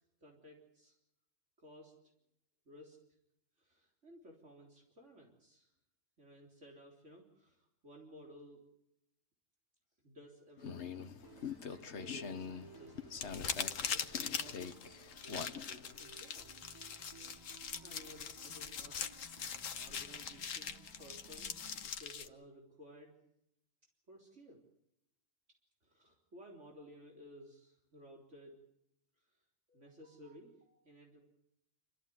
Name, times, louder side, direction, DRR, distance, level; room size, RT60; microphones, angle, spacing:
voice 1, 0.2-1.0 1.6-2.0 2.7-3.0 3.6-5.7 6.2-8.6 10.0-11.0 11.7-13.2 13.6-14.8 15.1-19.0 19.8-23.2 24.1-24.6 25.8-28.6 29.7-31.2, equal, 65° right, 0 dB, 4.0 m, -57 dB
sound 1, 10.6-16.0, left 6 dB, 60° left, 1.4 m, -45 dB
sound 2, 11.2-21.9, right 4 dB, 20° right, 1.2 m, -59 dB
sound 3, 13.2-22.3, left 7 dB, 85° left, 1.4 m, -42 dB
27.5 x 14.0 x 9.4 m, 0.80 s
omnidirectional pair, 1.3 m